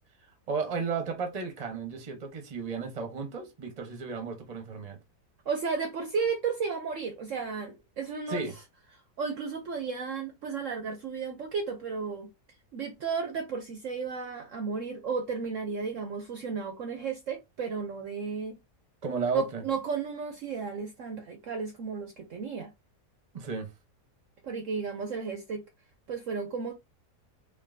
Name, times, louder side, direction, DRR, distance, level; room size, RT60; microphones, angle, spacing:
voice 1, 0.5-5.0 8.3-8.5 19.0-19.6 23.3-23.7, right 4 dB, 30° right, 0.9 m, -33 dB
voice 2, 5.5-8.4 9.2-12.3 12.7-18.6 19.3-22.7 24.4-25.6 26.1-26.7, right 5 dB, 60° right, 0.9 m, -33 dB
4.5 x 3.0 x 2.6 m
omnidirectional pair, 1.8 m